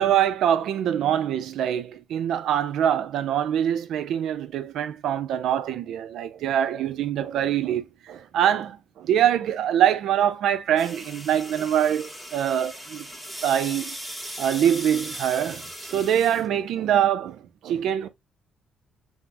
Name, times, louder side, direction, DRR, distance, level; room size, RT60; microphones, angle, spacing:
voice 1, 0.0-13.1 13.4-14.0 14.4-18.1, right 10 dB, 80° right, 0.4 m, -24 dB
sound 1, 10.8-16.5, equal, 5° right, 0.8 m, -38 dB
3.5 x 2.0 x 2.5 m
cardioid pair, 90°, 0 cm